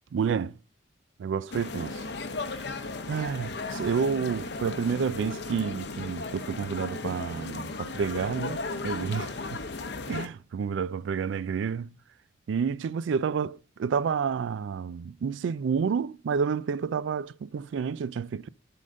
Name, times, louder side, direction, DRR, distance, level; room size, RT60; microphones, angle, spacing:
voice 1, 0.1-0.5 1.2-2.0 3.1-9.3 10.1-11.9 12.5-18.5, right 6 dB, 80° right, 0.3 m, -29 dB
sound 1, 1.5-10.3, left 3 dB, 60° left, 0.7 m, -36 dB
7.7 x 3.8 x 6.3 m
head